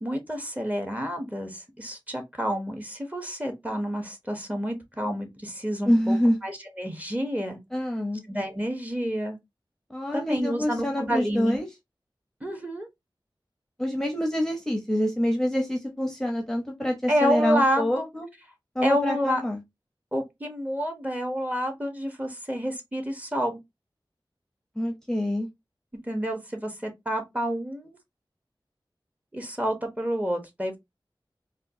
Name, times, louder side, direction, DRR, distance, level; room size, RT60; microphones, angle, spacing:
voice 1, 0.0-6.2 6.4-7.6 8.3-9.4 10.1-11.6 12.4-12.9 17.1-18.1 18.8-19.4 20.1-23.6 26.0-27.9 29.3-30.8, equal, 15° right, 1.0 m, -29 dB
voice 2, 5.9-6.4 7.7-8.2 9.9-11.7 13.8-18.3 18.7-19.6 24.8-25.5, equal, 5° left, 0.8 m, -26 dB
3.6 x 2.3 x 2.7 m
wide cardioid pair, 65°, 9 cm